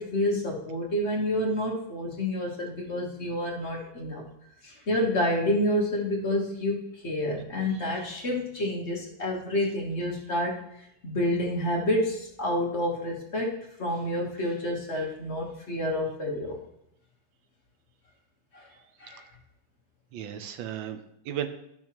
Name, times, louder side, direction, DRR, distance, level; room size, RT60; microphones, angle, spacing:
voice 1, 0.0-4.2 4.6-10.6 11.0-16.6 18.5-18.6 19.0-19.2, left 1 dB, 40° left, -1 dB, 1.4 m, -29 dB
voice 2, 7.7-8.3 8.6-8.7 19.1-19.2 20.1-21.5, right 10 dB, 90° right, 8 dB, 1.5 m, -37 dB
12.0 x 6.0 x 3.0 m, 0.76 s
omnidirectional pair, 2.0 m